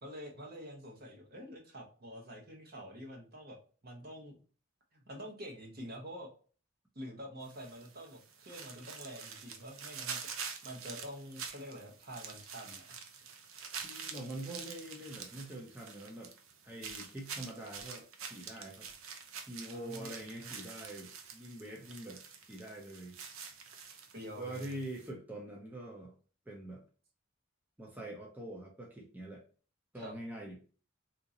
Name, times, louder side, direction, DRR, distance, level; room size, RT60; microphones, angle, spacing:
voice 1, 0.0-4.4 4.9-6.3 6.9-12.9 19.7-20.1 20.4-20.5 24.1-24.8 29.9-30.1, equal, 45° right, 1 dB, 1.0 m, -47 dB
sound 1, 7.4-25.1, right 6 dB, 70° right, 0.7 m, -47 dB
voice 2, 13.8-16.3 16.6-18.0 18.3-18.9 19.5-22.2 22.5-23.2 24.3-26.1 26.5-26.8 27.8-29.4 29.9-30.6, right 1 dB, 10° right, -2 dB, 0.6 m, -44 dB
3.7 x 2.8 x 2.7 m, 0.39 s
head